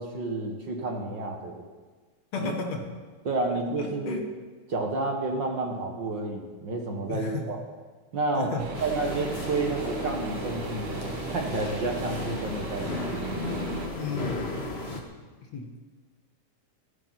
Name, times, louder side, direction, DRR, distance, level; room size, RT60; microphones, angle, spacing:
voice 1, 0.0-1.6 2.4-2.5 3.2-4.2 4.7-7.6 8.1-8.5 8.8-13.5 14.1-14.2, right 2 dB, 45° right, 2 dB, 1.7 m, -30 dB
voice 2, 2.3-2.8 3.8-4.2 7.1-7.5 8.3-8.9 14.0-14.7 15.5-15.7, left 4 dB, 65° left, 3 dB, 2.6 m, -34 dB
sound 1, 8.6-13.9, right 4 dB, 85° right, 2.8 m, -37 dB
sound 2, 8.7-15.0, left 2 dB, 30° left, 1.3 m, -35 dB
18.0 x 14.5 x 4.2 m, 1.4 s
omnidirectional pair, 3.4 m